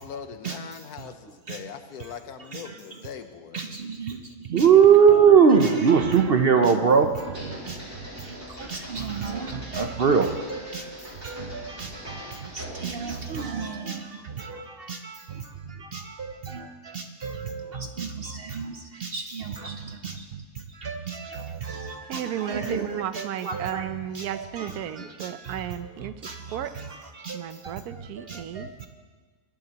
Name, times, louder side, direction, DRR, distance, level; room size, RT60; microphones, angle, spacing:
voice 1, 0.0-3.6, left 7 dB, 80° left, 9 dB, 1.3 m, -40 dB
voice 2, 3.5-7.8 8.2-23.9 24.1-25.6 26.2-27.8 28.3-28.9, right 6 dB, 55° right, 6 dB, 0.7 m, -25 dB
sound 1, 7.2-13.3, equal, 10° right, 4.1 m, -42 dB
voice 3, 22.1-26.7 27.3-28.7, right 10 dB, 80° right, 13 dB, 1.1 m, -34 dB
22.0 x 11.5 x 2.9 m, 1.4 s
omnidirectional pair, 1.6 m